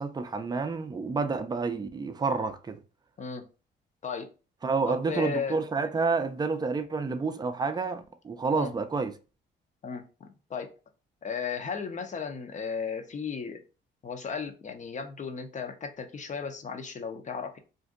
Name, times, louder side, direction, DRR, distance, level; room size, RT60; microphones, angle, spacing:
voice 1, 0.0-2.8 4.6-9.2, right 4 dB, 20° right, 0.4 m, -29 dB
voice 2, 3.2-3.5 4.0-4.3 4.8-5.6 8.5-8.7 9.8-10.7 11.2-13.6 14.0-17.6, left 5 dB, 40° left, 0.6 m, -35 dB
2.6 x 2.5 x 3.6 m
cardioid pair, 90°, 20 cm